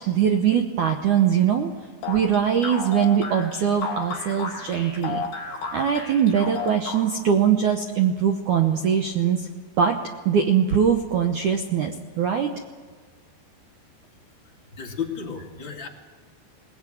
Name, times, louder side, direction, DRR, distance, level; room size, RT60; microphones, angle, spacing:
voice 1, 0.1-1.7 2.1-5.2 5.7-9.5 9.8-10.0 10.3-11.9 12.2-12.6, right 8 dB, 80° right, 5 dB, 1.8 m, -21 dB
sound 1, 2.0-7.3, left 4 dB, 70° left, 5.9 m, -33 dB
voice 2, 14.4-15.9, left 7 dB, 35° left, 0 dB, 2.4 m, -34 dB
21.5 x 19.5 x 9.2 m, 1.5 s
omnidirectional pair, 5.0 m